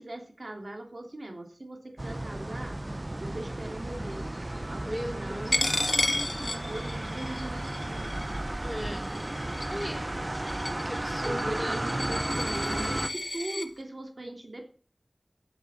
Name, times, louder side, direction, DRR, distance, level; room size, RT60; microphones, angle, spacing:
voice 1, 0.0-2.7 3.2-4.3 4.7-8.2 11.2-14.7, right 1 dB, 70° right, 3 dB, 3.2 m, -40 dB
sound 1, 2.0-13.1, right 1 dB, 45° right, 0.7 m, -34 dB
voice 2, 4.8-5.6 8.6-9.1 9.6-10.1 10.8-11.8, equal, ahead, 2 dB, 4.0 m, -36 dB
Coin (dropping), 5.5-13.7, left 2 dB, 70° left, 1.6 m, -33 dB
10.0 x 7.7 x 7.4 m, 0.41 s
wide cardioid pair, 45°, 0 cm